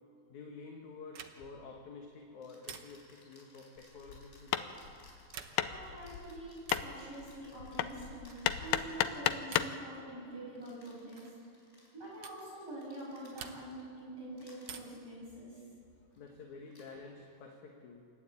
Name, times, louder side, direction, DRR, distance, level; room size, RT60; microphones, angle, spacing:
voice 1, 0.3-4.8 16.2-18.0, left 4 dB, 60° left, 1 dB, 2.9 m, -50 dB
sound 1, 1.1-1.6 2.6-3.2 5.2-5.8 6.6-7.0 8.3-8.6 9.5-9.9 11.2-11.4 12.2-12.5 13.4-13.9 14.6-15.1 16.6-17.3, right 8 dB, 80° right, 1.2 m, -49 dB
sound 2, 1.4-1.6 2.4-9.6 10.6-14.0 14.4-15.0 16.1-16.3 16.7-16.9, left 1 dB, 20° left, 4.9 m, -62 dB
Hammer, 3.8-9.8, left 11 dB, 80° left, 2.2 m, -35 dB
voice 2, 5.5-11.3 11.9-15.6, right 1 dB, 45° right, -7 dB, 7.6 m, -46 dB
28.5 x 12.0 x 8.6 m, 2.7 s
omnidirectional pair, 4.0 m